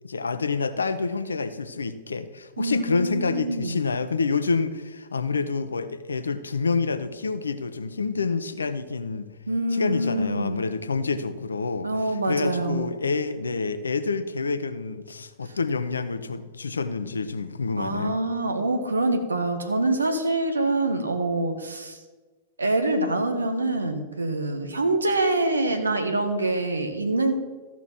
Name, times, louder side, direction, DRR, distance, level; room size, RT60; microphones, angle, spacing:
voice 1, 0.0-9.3 9.7-11.9 12.3-18.2, left 4 dB, 80° left, 11 dB, 0.8 m, -28 dB
voice 2, 2.6-3.8 9.5-10.6 11.8-12.9 17.8-22.0 22.6-27.3, right 2 dB, 80° right, 7 dB, 1.4 m, -25 dB
14.0 x 6.1 x 6.0 m, 1.3 s
figure-of-eight pair, 100°, 0 cm